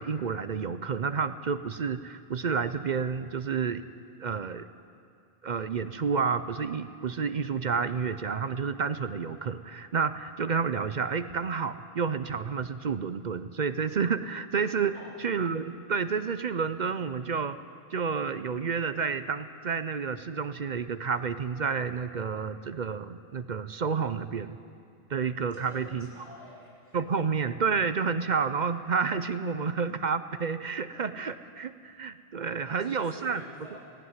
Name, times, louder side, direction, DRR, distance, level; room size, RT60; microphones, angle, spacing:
voice 1, 0.0-3.8 4.2-4.7 5.4-14.9 15.2-17.6 17.9-24.6 25.1-26.1 26.9-33.4, right 5 dB, 50° right, 12 dB, 0.7 m, -30 dB
voice 2, 25.5-27.0 32.7-34.0, equal, 25° right, -6 dB, 7.1 m, -48 dB
17.0 x 16.0 x 9.6 m, 2.5 s
omnidirectional pair, 1.1 m